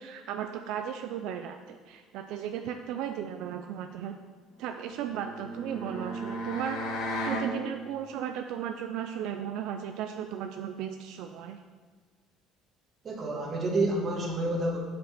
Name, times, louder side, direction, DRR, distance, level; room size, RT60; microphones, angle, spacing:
voice 1, 0.0-4.2 4.6-6.9 7.2-11.6, right 9 dB, 70° right, 6 dB, 0.4 m, -35 dB
sound 1, 4.9-7.5, equal, 70° left, 1.7 m, -35 dB
voice 2, 13.0-14.8, right 2 dB, 30° right, -1 dB, 1.5 m, -29 dB
6.8 x 5.2 x 5.8 m, 1.5 s
cardioid pair, 145°, 0 cm